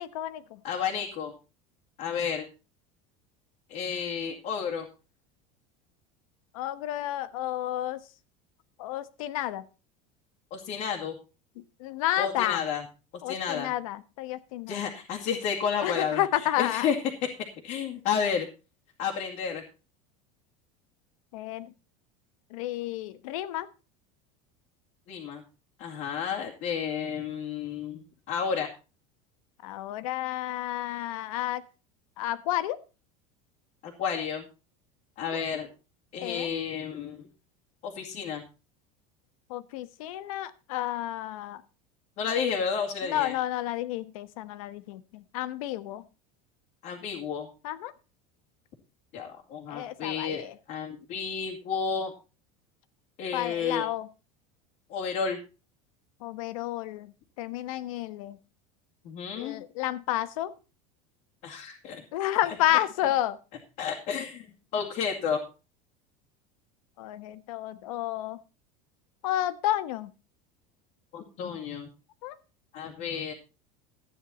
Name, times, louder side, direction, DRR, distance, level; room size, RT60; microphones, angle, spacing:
voice 1, 0.0-0.6 6.5-8.0 8.8-9.6 11.8-12.6 13.2-14.8 15.8-16.9 21.3-21.7 22.5-23.7 29.6-31.6 32.2-32.8 35.2-35.4 36.2-36.5 39.5-41.6 43.0-46.0 47.6-47.9 49.7-50.5 53.3-54.1 56.2-57.1 57.4-58.4 59.4-60.5 62.1-63.4 67.0-68.4 69.2-70.1 72.2-72.3, left 13 dB, 80° left, 13 dB, 1.2 m, -31 dB
voice 2, 0.6-1.3 2.0-2.5 3.7-4.9 10.5-11.2 12.2-12.8 13.3-13.7 14.7-17.0 17.6-18.5 19.0-19.6 25.1-25.4 25.8-28.0 28.3-28.7 33.8-34.4 35.2-35.7 36.1-37.3 37.8-38.4 42.2-43.3 46.8-47.5 49.1-52.1 53.2-53.9 54.9-55.4 59.0-59.6 61.4-62.0 62.5-62.6 63.8-65.4 71.1-71.9 72.7-73.3, left 7 dB, 40° left, -2 dB, 2.4 m, -31 dB
13.5 x 9.8 x 4.3 m, 0.33 s
cardioid pair, 170°, 17 cm